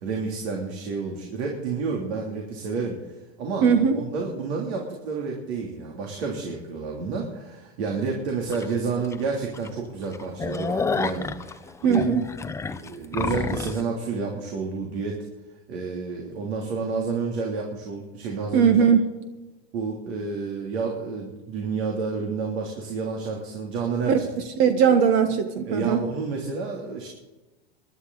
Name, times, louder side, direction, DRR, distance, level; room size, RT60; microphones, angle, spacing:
voice 1, 0.0-12.1 12.6-15.2 15.7-18.8 19.7-24.3 25.7-27.1, right 4 dB, 75° right, 0 dB, 3.2 m, -30 dB
voice 2, 3.6-4.0 11.8-12.3 18.5-19.1 24.1-24.3 24.6-26.1, right 7 dB, 60° right, 8 dB, 1.4 m, -19 dB
sound 1, 8.5-8.7 9.1-9.2 9.5-9.7 10.0-13.8, left 4 dB, 10° left, 0.5 m, -29 dB
23.0 x 11.5 x 4.1 m, 1.1 s
supercardioid pair, 125°, 32 cm